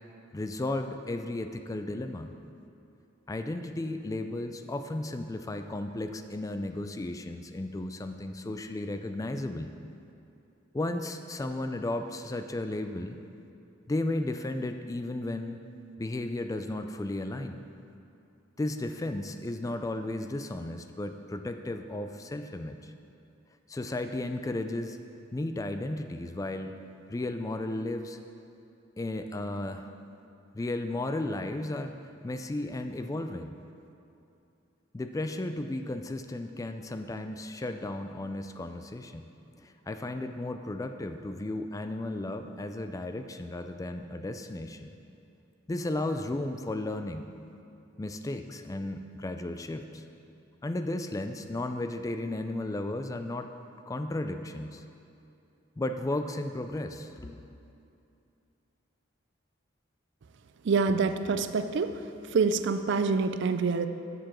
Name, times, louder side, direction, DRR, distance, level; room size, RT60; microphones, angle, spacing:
voice 1, 0.3-2.3 3.3-9.7 10.7-13.2 13.9-15.6 16.0-17.6 18.6-22.9 23.7-25.0 25.3-26.8 27.1-28.2 29.0-29.9 30.5-31.9 32.2-33.5 34.9-39.2 39.6-44.9 45.7-47.3 48.0-50.0 50.6-53.5 53.9-54.8 55.8-57.5, left 2 dB, 15° left, 7 dB, 0.3 m, -34 dB
voice 2, 60.7-61.9 62.3-63.9, right 4 dB, 65° right, 10 dB, 0.4 m, -26 dB
7.5 x 6.9 x 6.0 m, 2.7 s
head